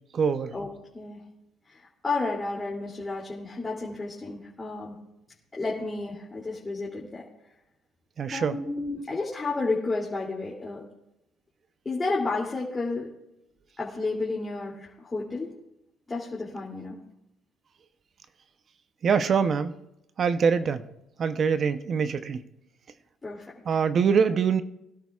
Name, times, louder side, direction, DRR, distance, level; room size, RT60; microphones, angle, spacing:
voice 1, 0.1-0.5 8.2-8.6 19.0-19.7 20.2-20.9 21.2-22.4 23.7-24.6, right 6 dB, 45° right, 10 dB, 0.7 m, -24 dB
voice 2, 1.7-4.9 5.5-7.2 8.3-10.8 11.8-13.1 13.8-15.5 16.1-17.0 23.2-23.5, left 3 dB, 25° left, -5 dB, 2.8 m, -31 dB
21.5 x 12.0 x 2.4 m, 0.86 s
cardioid pair, 95°, 0 cm